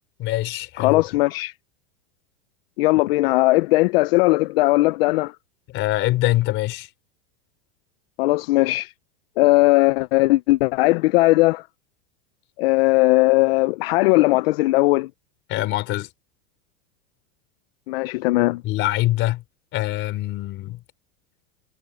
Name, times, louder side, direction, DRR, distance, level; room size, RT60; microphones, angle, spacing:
voice 1, 0.2-1.2 5.7-6.9 15.5-16.1 18.6-19.4 19.7-20.8, left 16 dB, 35° left, 3.8 m, -24 dB
voice 2, 0.8-1.5 2.8-5.3 8.2-8.9 9.4-11.6 12.6-15.1 17.9-18.6, left 21 dB, 65° left, 0.6 m, -18 dB
supercardioid pair, 165°, 32 cm